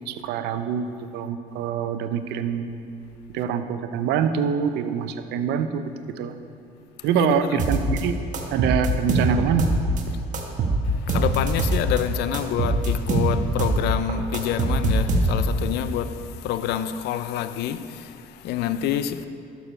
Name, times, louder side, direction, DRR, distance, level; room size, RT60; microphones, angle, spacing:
voice 1, 0.1-0.8 1.1-2.7 3.3-5.8 6.2-6.3 7.0-8.2 8.5-9.7, right 7 dB, 85° right, 0.6 m, -25 dB
voice 2, 7.0-7.7 10.8-19.2, left 10 dB, 80° left, 0.5 m, -27 dB
sound 1, 7.6-8.0 8.3-10.0 10.3-12.0 12.3-13.8 14.1-15.6, right 3 dB, 50° right, 1.2 m, -23 dB
11.5 x 7.0 x 4.4 m
cardioid pair, 110°, 17 cm